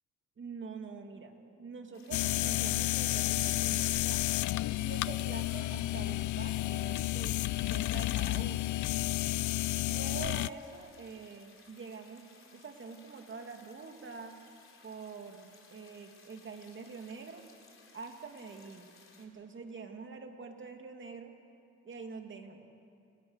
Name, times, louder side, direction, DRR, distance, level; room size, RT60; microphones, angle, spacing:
voice 1, 0.4-4.2 4.8-7.4 7.7-8.7 9.9-14.4 14.8-17.4 17.9-18.9 19.2-21.3 21.8-22.7, right 5 dB, 40° right, 4 dB, 2.6 m, -45 dB
sound 1, 1.9-19.3, left 4 dB, 45° left, 3.7 m, -60 dB
Old crashed hard drive, 2.1-10.5, left 17 dB, 75° left, 0.5 m, -31 dB
28.5 x 16.5 x 6.5 m, 2.6 s
cardioid pair, 90°, 30 cm